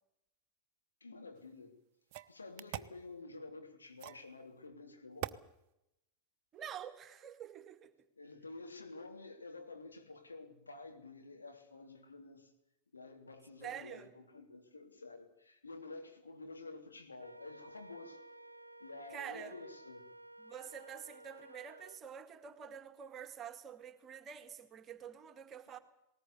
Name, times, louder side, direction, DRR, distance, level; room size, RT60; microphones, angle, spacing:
voice 1, 1.0-1.8 2.3-5.4 8.1-12.5 12.9-18.2 18.8-20.1, left 3 dB, 75° left, 3.2 m, -50 dB
sound 1, 1.4-1.5 2.1-3.0 4.0-4.3 5.2-5.4, right 14 dB, 50° right, 0.8 m, -42 dB
voice 2, 6.5-7.9 13.6-14.1 19.1-19.5 20.4-25.8, right 8 dB, 25° right, 1.7 m, -47 dB
Wind instrument woodwind instrument, 17.2-22.0, right 1 dB, 85° right, 0.7 m, -55 dB
19.0 x 19.0 x 8.3 m
figure-of-eight pair, 90°, 0 cm